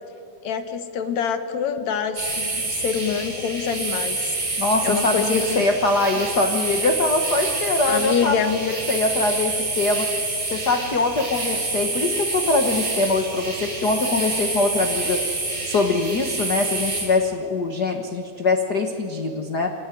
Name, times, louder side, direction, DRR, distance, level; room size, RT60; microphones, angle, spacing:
voice 1, 0.4-4.3 4.8-5.6 7.9-8.6, left 7 dB, 60° left, 9 dB, 2.3 m, -26 dB
sound 1, 2.2-17.0, right 2 dB, 65° right, 9.3 m, -27 dB
voice 2, 4.6-10.1 10.5-15.2 15.6-19.7, left 3 dB, 85° left, 5 dB, 0.8 m, -23 dB
27.0 x 18.5 x 9.2 m, 2.6 s
omnidirectional pair, 4.1 m